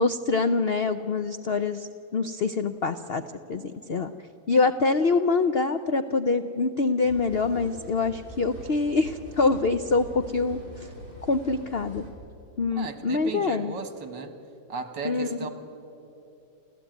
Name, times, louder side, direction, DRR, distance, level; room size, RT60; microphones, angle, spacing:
voice 1, 0.0-3.2 3.5-3.6 3.9-4.1 4.5-10.6 11.3-12.1 12.6-13.7 15.0-15.5, left 3 dB, 70° left, 9 dB, 0.5 m, -25 dB
sound 1, 7.0-12.1, equal, 25° left, 4.2 m, -43 dB
voice 2, 12.7-14.3 14.7-15.5, right 4 dB, 70° right, 9 dB, 2.3 m, -35 dB
29.0 x 14.5 x 9.3 m, 2.8 s
omnidirectional pair, 2.0 m